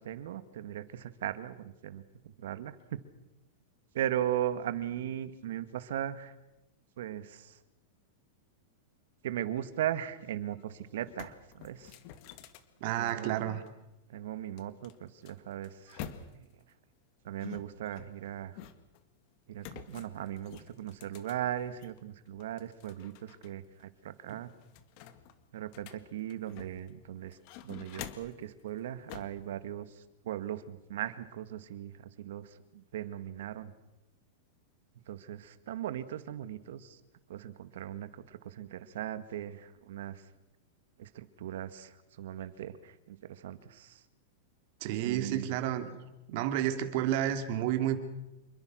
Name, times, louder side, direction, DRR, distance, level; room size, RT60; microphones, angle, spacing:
voice 1, 0.0-3.0 3.9-6.3 7.0-7.6 9.2-12.0 13.0-13.5 14.1-16.0 16.3-16.5 17.2-18.6 19.5-24.5 25.5-27.4 27.6-33.7 35.1-37.0 37.3-40.2 41.0-44.0 45.0-45.5, right 11 dB, 75° right, 12 dB, 2.0 m, -38 dB
sound 1, 10.5-10.6 10.9-13.7 14.6-16.6 17.4-19.0 19.6-22.0 22.4-23.5 23.8-23.9 24.3-26.9 27.3-28.4 29.1-29.4, left 10 dB, 45° left, 2.0 m, -48 dB
voice 2, 12.8-13.6 44.8-45.9 46.3-48.0, right 11 dB, 50° right, 8 dB, 2.9 m, -30 dB
27.5 x 22.5 x 6.4 m, 0.95 s
supercardioid pair, 155°, 0 cm